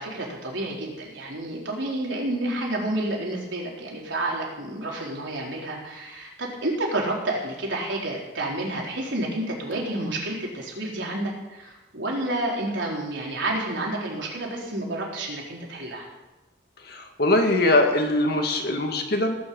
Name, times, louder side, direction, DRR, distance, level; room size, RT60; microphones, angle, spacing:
voice 1, 0.0-16.1, right 1 dB, 85° right, -2 dB, 4.0 m, -30 dB
voice 2, 16.9-19.4, left 1 dB, 55° left, 3 dB, 2.0 m, -22 dB
18.0 x 6.4 x 7.8 m, 1.1 s
head